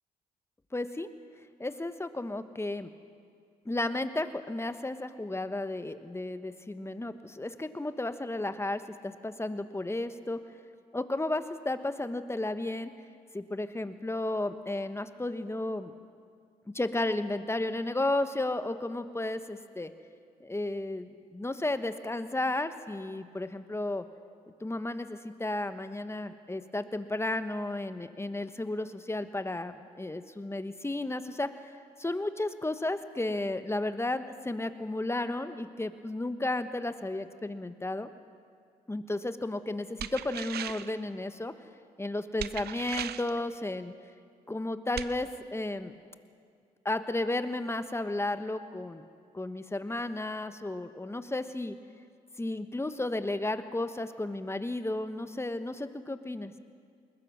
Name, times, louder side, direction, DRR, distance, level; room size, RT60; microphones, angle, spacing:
voice 1, 0.7-1.1 1.6-2.9 3.6-10.4 10.9-12.9 13.3-15.9 16.7-19.9 20.4-24.0 24.6-31.5 32.0-38.1 38.9-41.5 42.0-43.9 44.5-45.9 46.8-49.0 49.3-51.8 52.4-56.5, left 2 dB, 15° left, 10 dB, 1.4 m, -33 dB
sound 1, 40.0-41.0 42.4-43.4 45.0-45.1, right 11 dB, 65° right, 0.7 m, -38 dB
21.0 x 20.5 x 6.3 m, 2.2 s
hypercardioid pair, 50°, 18 cm